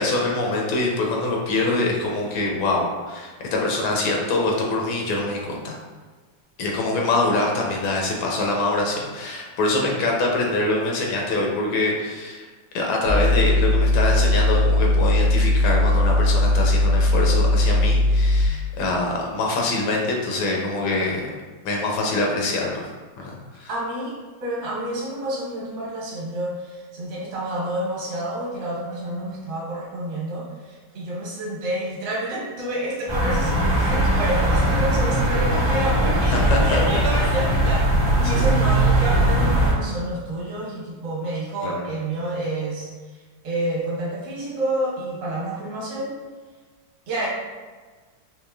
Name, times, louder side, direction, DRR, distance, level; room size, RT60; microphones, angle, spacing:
voice 1, 0.0-5.8 6.6-12.4 12.7-21.3 21.6-22.9 23.2-23.7 36.3-36.8 38.2-38.4 41.6-41.8, left 2 dB, 75° left, -1 dB, 1.4 m, -24 dB
voice 2, 6.8-7.3 23.7-24.1 24.4-46.1 47.1-47.3, right 1 dB, 60° right, -4 dB, 1.6 m, -29 dB
sound 1, 13.1-18.5, left 1 dB, 90° right, 1.5 m, -18 dB
sound 2, 33.1-39.7, right 1 dB, 30° right, 0.5 m, -20 dB
4.7 x 2.8 x 2.3 m, 1.4 s
omnidirectional pair, 2.3 m